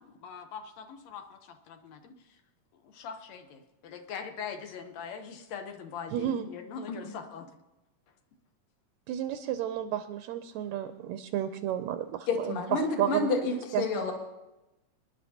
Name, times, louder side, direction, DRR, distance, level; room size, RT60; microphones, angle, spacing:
voice 1, 0.0-2.1 2.8-7.5, left 6 dB, 65° left, 6 dB, 2.1 m, -42 dB
voice 2, 6.1-6.5 9.1-13.3 13.7-13.9, right 11 dB, 75° right, 8 dB, 1.8 m, -32 dB
voice 3, 12.3-14.1, left 3 dB, 50° left, 2 dB, 2.3 m, -30 dB
25.0 x 11.0 x 2.9 m, 0.99 s
omnidirectional pair, 3.6 m